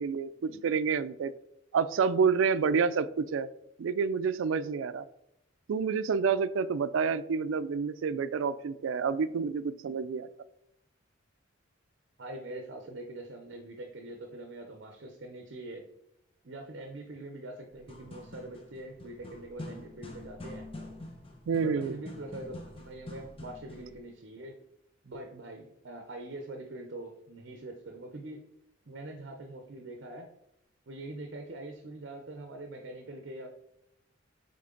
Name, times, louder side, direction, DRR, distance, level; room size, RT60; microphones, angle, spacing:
voice 1, 0.0-1.3 1.7-3.5 3.8-5.1 5.7-10.3 21.5-22.0, right 5 dB, 80° right, 15 dB, 0.4 m, -28 dB
voice 2, 12.2-15.8 16.4-20.7 21.6-24.5 25.0-28.4 28.9-30.2 30.9-33.5, right 2 dB, 65° right, 4 dB, 0.7 m, -43 dB
sound 1, 17.7-24.0, left 2 dB, 30° left, 0.9 m, -46 dB
7.6 x 3.7 x 3.8 m, 0.79 s
head